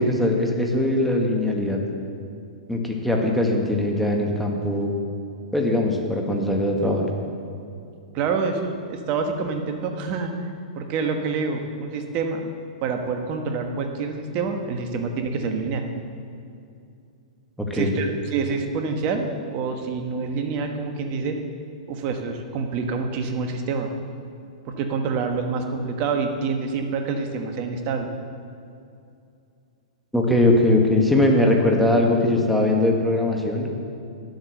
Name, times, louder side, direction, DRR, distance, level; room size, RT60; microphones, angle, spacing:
voice 1, 0.0-1.8 2.7-4.9 5.5-7.1 17.6-17.9 30.1-33.7, left 1 dB, ahead, 0 dB, 1.6 m, -21 dB
voice 2, 8.1-10.3 10.7-12.5 12.8-15.8 17.7-21.4 21.9-23.9 24.6-28.1, right 4 dB, 40° right, 4 dB, 1.4 m, -27 dB
11.0 x 8.0 x 6.5 m, 2.5 s
hypercardioid pair, 120°, 4 cm